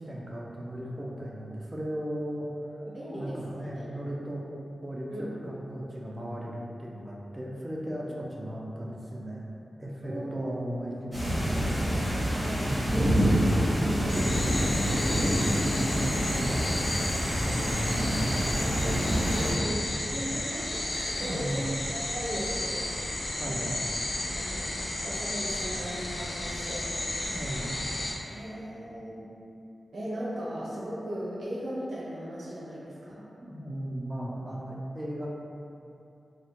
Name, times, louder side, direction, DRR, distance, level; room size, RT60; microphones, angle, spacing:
voice 1, 0.0-2.5 3.1-4.4 4.8-9.5 9.8-13.2 14.0-14.5 14.9-16.7 17.4-18.9 19.8-20.2 21.2-21.7 23.4-23.7 27.3-27.8 33.4-35.3, equal, 25° right, -3 dB, 0.3 m, -37 dB
voice 2, 2.8-3.9 5.1-5.6 8.1-8.2 8.8-8.9 10.0-10.8 12.4-12.7 13.7-14.6 19.3-23.8 24.3-26.9 28.2-29.2 29.9-33.2, equal, 80° right, -8 dB, 0.7 m, -38 dB
sound 1, 11.1-19.5, equal, 5° right, 0.8 m, -27 dB
sound 2, 14.1-28.1, left 1 dB, 65° left, 0.4 m, -33 dB
2.2 x 2.1 x 2.7 m, 2.6 s
wide cardioid pair, 105°, 0 cm